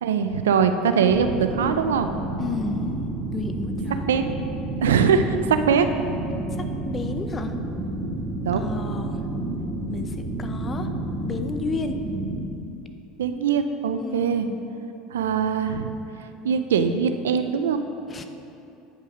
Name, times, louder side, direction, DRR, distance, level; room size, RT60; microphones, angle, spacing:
voice 1, 0.0-2.1 4.1-4.3 4.8-5.9 8.5-8.6 13.2-14.5 15.1-15.9 16.4-17.9, right 6 dB, 85° right, 8 dB, 0.4 m, -22 dB
sound 1, 1.1-12.4, right 2 dB, 35° right, 1.5 m, -30 dB
voice 2, 2.4-4.1 6.6-7.6 8.6-9.2 9.9-10.9 11.2-12.0 14.0-14.6 18.1-18.2, left 4 dB, 30° left, 7 dB, 0.7 m, -32 dB
8.8 x 5.4 x 5.0 m, 2.9 s
hypercardioid pair, 85°, 0 cm